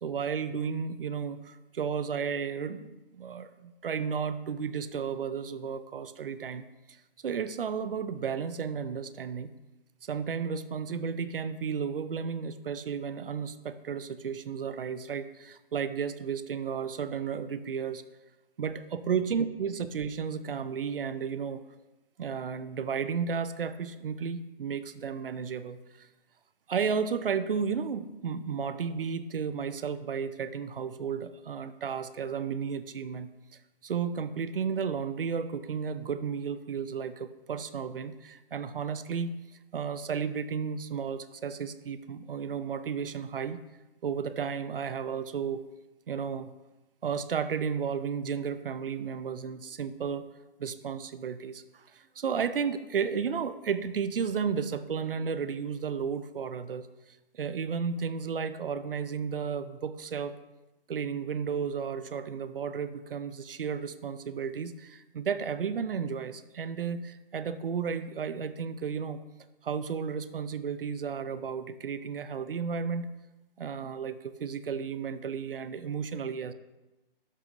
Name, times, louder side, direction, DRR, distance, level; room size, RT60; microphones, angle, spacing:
voice 1, 0.0-9.5 10.0-18.0 18.6-21.6 22.2-26.1 26.7-33.3 33.8-39.3 39.7-43.6 44.0-45.7 46.1-46.5 47.0-50.3 50.6-56.9 57.3-60.3 60.9-69.2 69.6-73.1 73.6-76.5, right 6 dB, 70° right, 13 dB, 0.6 m, -33 dB
12.0 x 6.1 x 2.6 m, 1.0 s
figure-of-eight pair, 145°, 29 cm